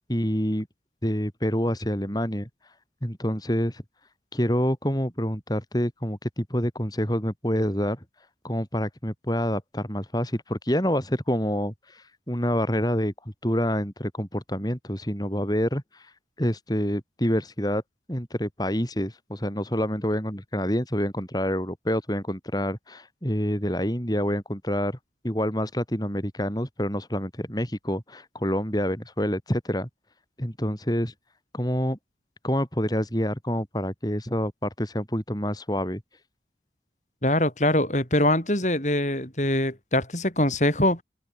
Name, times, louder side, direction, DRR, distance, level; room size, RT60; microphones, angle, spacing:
voice 1, 0.1-0.7 1.0-2.5 3.0-3.8 4.3-8.0 8.4-13.1 13.4-16.1 16.4-17.8 18.1-25.0 25.2-29.9 30.4-31.1 31.5-32.0 32.4-36.0, equal, 20° left, 5.6 m, -27 dB
voice 2, 37.2-41.0, left 1 dB, 40° left, 5.9 m, -23 dB
head